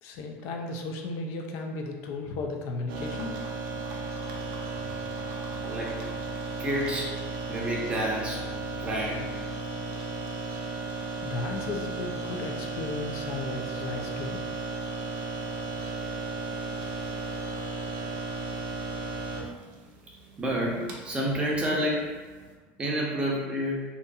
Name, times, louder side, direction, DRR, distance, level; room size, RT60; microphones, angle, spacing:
voice 1, 0.0-3.3 11.2-14.4, left 3 dB, 60° left, 2 dB, 0.4 m, -35 dB
sound 1, 2.9-22.5, right 3 dB, 90° right, 0.5 m, -35 dB
voice 2, 5.6-5.9 6.6-7.2 7.5-8.4 8.8-9.3 16.0-16.1 20.4-22.1 22.8-23.8, equal, 20° right, -3 dB, 0.6 m, -29 dB
2.7 x 2.5 x 2.3 m, 1.4 s
cardioid pair, 145°, 6 cm